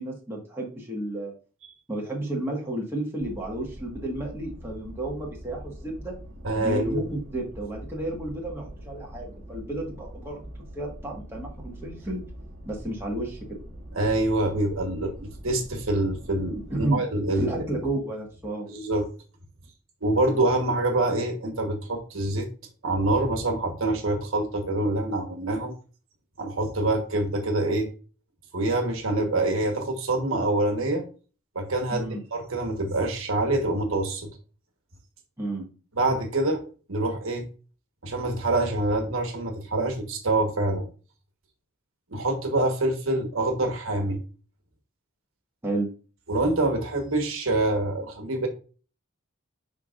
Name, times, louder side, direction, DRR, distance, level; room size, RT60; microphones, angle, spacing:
voice 1, 0.0-1.3 1.9-6.1 6.5-10.4 10.7-12.2 12.6-13.4 16.5-17.0 17.4-18.7 31.9-32.2 35.4-35.7 45.6-45.9, right 1 dB, 10° right, -2 dB, 1.6 m, -32 dB
sound 1, 3.2-16.9, equal, 55° right, 1.3 m, -43 dB
voice 2, 6.4-7.1 13.9-17.7 18.7-19.1 20.0-22.5 22.8-25.7 26.4-27.9 28.5-31.0 31.5-34.3 35.9-36.6 36.9-37.4 38.0-40.9 42.1-44.2 46.3-48.5, right 2 dB, 75° right, 3 dB, 1.4 m, -26 dB
10.5 x 3.5 x 2.5 m, 0.37 s
head